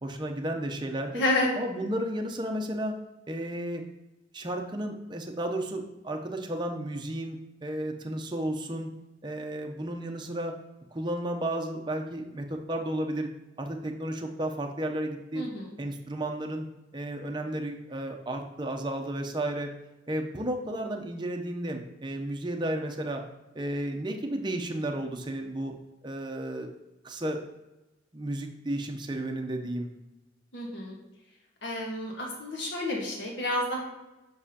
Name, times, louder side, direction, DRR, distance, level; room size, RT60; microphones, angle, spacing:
voice 1, 0.0-1.2 1.6-2.9 3.3-3.8 4.3-8.9 9.2-10.5 10.9-13.3 13.6-15.4 15.8-16.7 16.9-19.7 20.1-23.2 23.5-25.7 26.0-26.7 27.0-27.4 28.1-29.9, right 1 dB, 25° right, 3 dB, 0.6 m, -33 dB
voice 2, 1.1-1.5 15.3-15.7 30.5-31.0 31.6-33.8, left 2 dB, 70° left, -1 dB, 1.6 m, -30 dB
7.2 x 6.2 x 2.8 m, 1.0 s
head